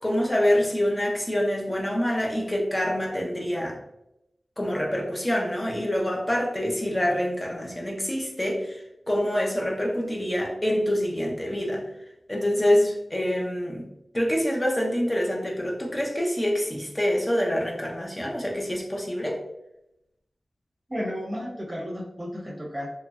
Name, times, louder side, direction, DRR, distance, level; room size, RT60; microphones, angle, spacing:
voice 1, 0.0-3.8 4.6-8.8 9.1-11.8 12.3-13.8 14.1-19.4, equal, 20° left, -1 dB, 0.6 m, -26 dB
voice 2, 20.9-22.9, equal, 15° right, -3 dB, 0.9 m, -33 dB
3.0 x 2.5 x 2.3 m, 0.86 s
wide cardioid pair, 85°, 0 cm